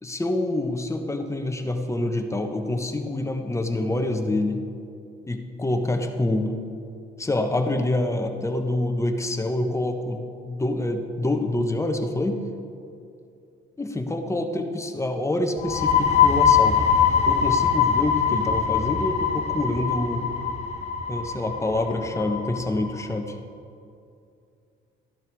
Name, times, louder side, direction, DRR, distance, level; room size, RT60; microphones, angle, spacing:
voice 1, 0.0-4.7 5.3-6.5 7.2-12.4 13.8-16.8 17.3-20.3 21.1-23.3, left 2 dB, 15° left, 5 dB, 1.2 m, -26 dB
sound 1, 15.6-23.0, left 7 dB, 35° left, 1.7 m, -22 dB
14.0 x 11.5 x 4.8 m, 2.5 s
cardioid pair, 90°, 20 cm